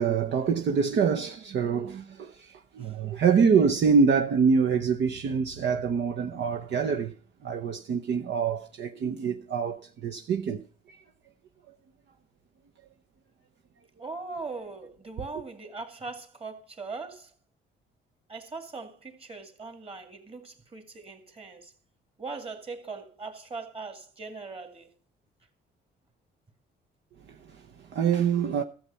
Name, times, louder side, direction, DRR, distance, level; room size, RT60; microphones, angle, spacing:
voice 1, 0.0-7.1 7.4-10.6 10.9-11.0 27.3-28.6, right 6 dB, 65° right, 0.9 m, -25 dB
voice 2, 14.0-17.3 18.3-21.7 22.2-24.9, right 4 dB, 30° right, 2.3 m, -40 dB
13.5 x 7.2 x 5.6 m
cardioid pair, 90°, 20 cm